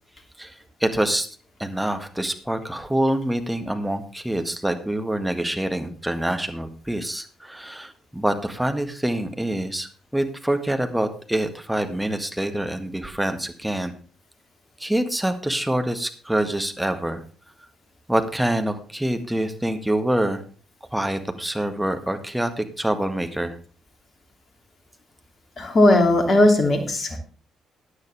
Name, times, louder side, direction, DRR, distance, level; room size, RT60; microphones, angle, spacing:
voice 1, 0.8-1.3 1.6-13.9 14.8-17.2 18.1-20.4 20.9-23.6, right 1 dB, 5° right, 6 dB, 1.8 m, -26 dB
voice 2, 25.6-27.2, left 1 dB, 40° left, 6 dB, 2.8 m, -17 dB
15.0 x 9.6 x 3.4 m, 0.39 s
figure-of-eight pair, 40°, 0 cm